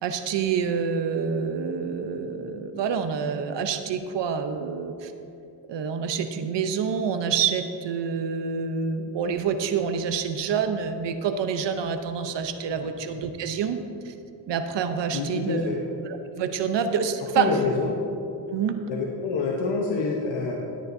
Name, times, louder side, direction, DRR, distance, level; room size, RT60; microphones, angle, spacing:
voice 1, 0.0-5.1 5.7-13.8 14.0-14.1 14.5-15.7 16.1-17.5 18.5-18.8, right 6 dB, 70° right, 7 dB, 0.8 m, -27 dB
voice 2, 15.1-15.8 17.3-18.0 18.9-20.6, left 4 dB, 90° left, -1 dB, 1.1 m, -27 dB
13.0 x 9.6 x 2.7 m, 2.7 s
cardioid pair, 95°, 44 cm